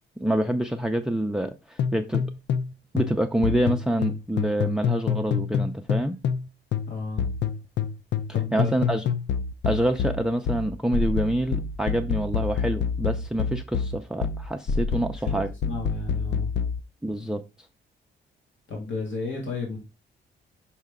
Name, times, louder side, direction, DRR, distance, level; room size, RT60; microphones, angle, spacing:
voice 1, 0.2-2.2 2.9-6.2 8.5-9.1 9.6-15.5 17.0-17.4, right 1 dB, 5° right, 8 dB, 0.4 m, -26 dB
sound 1, 1.8-2.7 3.0-6.5 6.7-16.8, left 6 dB, 65° left, 0.6 m, -27 dB
voice 2, 6.9-7.3 8.3-8.8 15.2-16.5 18.7-19.8, left 4 dB, 85° left, -1 dB, 2.3 m, -33 dB
5.7 x 5.5 x 3.6 m, 0.26 s
cardioid pair, 125°, 20 cm